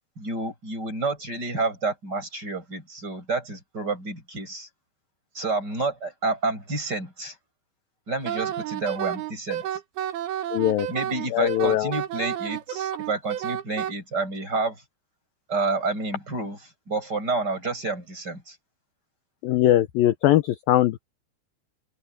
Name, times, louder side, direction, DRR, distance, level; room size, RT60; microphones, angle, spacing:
voice 1, 0.2-4.7 5.3-7.3 8.1-9.6 10.9-14.8 15.5-16.6 16.9-18.5, right 3 dB, 20° right, 8.3 m, -29 dB
Wind instrument woodwind instrument, 8.2-13.9, right 11 dB, 70° right, 3.4 m, -30 dB
voice 2, 10.5-10.9 11.3-11.9 19.4-21.0, left 13 dB, 75° left, 2.2 m, -21 dB
open air
omnidirectional pair, 5.0 m